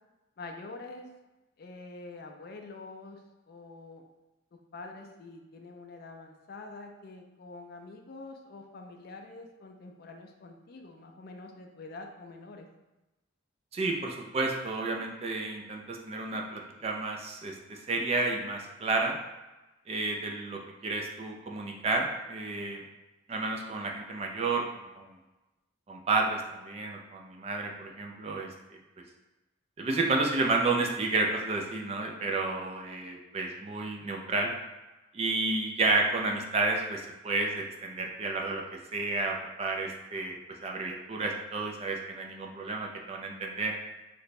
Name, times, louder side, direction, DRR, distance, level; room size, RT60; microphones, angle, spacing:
voice 1, 0.4-1.1 1.6-3.2 3.5-4.0 4.7-12.7, left 3 dB, 50° left, 3 dB, 0.4 m, -46 dB
voice 2, 13.7-19.2 19.9-22.8 23.3-25.1 25.9-28.8 29.8-34.5 35.1-38.6 38.9-40.3 40.6-43.8, right 3 dB, 30° right, 1 dB, 0.3 m, -31 dB
3.2 x 2.1 x 4.0 m, 1.1 s
head